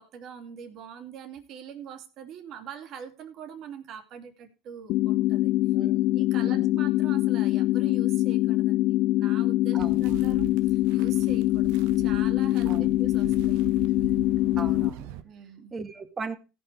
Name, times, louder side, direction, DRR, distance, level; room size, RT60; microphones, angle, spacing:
voice 1, 0.0-5.5 6.1-13.6 15.2-15.7, right 7 dB, 55° right, 5 dB, 2.8 m, -43 dB
sound 1, 4.9-14.9, left 16 dB, 65° left, 0.5 m, -24 dB
voice 2, 5.7-6.8 9.7-10.3 12.7-13.0 14.6-15.1 15.7-16.4, right 4 dB, 30° right, 8 dB, 2.1 m, -38 dB
sound 2, 9.8-15.2, right 11 dB, 80° right, 1.2 m, -41 dB
16.5 x 6.2 x 4.7 m, 0.30 s
supercardioid pair, 100°, 0 cm